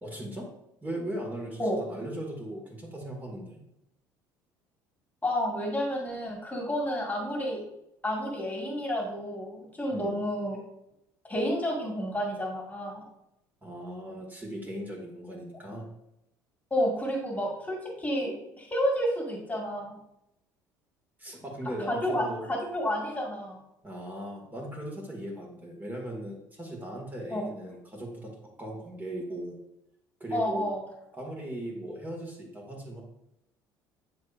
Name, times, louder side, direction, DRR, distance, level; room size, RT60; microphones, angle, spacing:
voice 1, 0.0-0.5 0.8-3.6 9.9-10.2 13.6-15.9 21.2-22.4 23.8-28.3 28.6-29.6 30.2-30.7 31.1-33.0, right 1 dB, 20° right, -1 dB, 2.1 m, -38 dB
voice 2, 5.2-7.6 8.0-10.6 11.3-13.0 16.7-20.0 21.9-23.6 27.3-27.4 30.3-30.8, equal, 15° left, -1 dB, 2.0 m, -30 dB
9.3 x 4.4 x 2.6 m, 0.84 s
hypercardioid pair, 70°, 10 cm